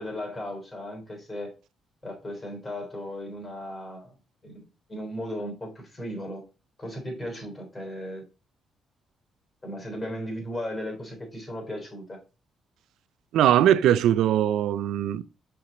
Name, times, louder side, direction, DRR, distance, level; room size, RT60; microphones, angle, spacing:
voice 1, 0.0-1.5 2.0-4.1 4.4-6.4 6.8-8.2 9.6-12.2, equal, 25° left, 3.3 m, -36 dB
voice 2, 13.3-15.2, right 11 dB, 80° right, 0.4 m, -21 dB
6.0 x 4.8 x 3.8 m
cardioid pair, 90°, 0 cm